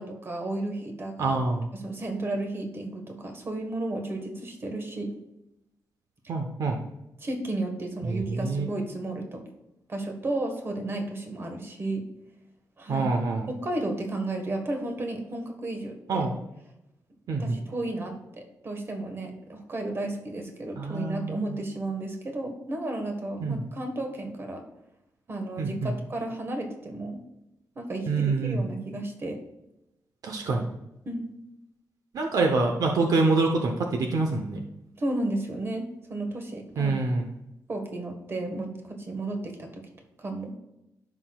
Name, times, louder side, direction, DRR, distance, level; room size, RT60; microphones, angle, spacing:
voice 1, 0.0-1.4 1.7-5.1 7.2-9.4 9.9-12.0 12.8-13.1 13.5-16.3 17.4-24.6 25.3-27.2 27.7-29.4 31.0-31.3 35.0-37.0 37.7-39.8 40.2-40.5, right 2 dB, 40° right, 4 dB, 1.4 m, -33 dB
voice 2, 1.2-1.7 6.3-6.8 8.0-8.7 12.9-13.5 16.1-16.3 17.3-17.6 20.8-21.6 23.4-23.6 25.6-25.9 28.1-28.7 30.2-30.7 32.1-34.7 36.8-37.3, right 3 dB, 70° right, 3 dB, 0.8 m, -26 dB
14.5 x 6.0 x 2.3 m, 0.91 s
wide cardioid pair, 130°, 6 cm